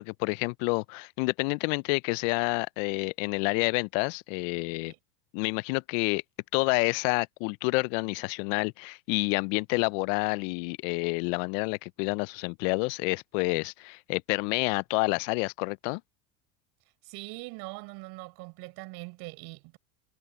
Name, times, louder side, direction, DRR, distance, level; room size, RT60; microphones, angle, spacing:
voice 1, 0.0-4.9 5.3-6.2 6.5-16.0, left 30 dB, 60° left, 0.9 m, -29 dB
voice 2, 17.0-19.8, right 26 dB, 60° right, 7.0 m, -42 dB
hypercardioid pair, 90°, 44 cm